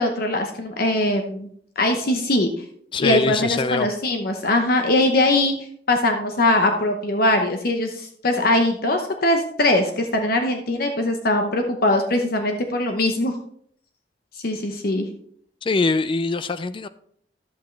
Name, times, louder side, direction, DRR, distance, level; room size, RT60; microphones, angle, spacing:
voice 1, 0.0-1.5 1.8-2.6 3.0-5.5 5.9-13.4 14.4-15.1, left 1 dB, 60° left, 0.9 m, -21 dB
voice 2, 2.9-3.9 15.6-16.9, left 3 dB, 30° left, 0.3 m, -23 dB
11.0 x 8.2 x 3.2 m
head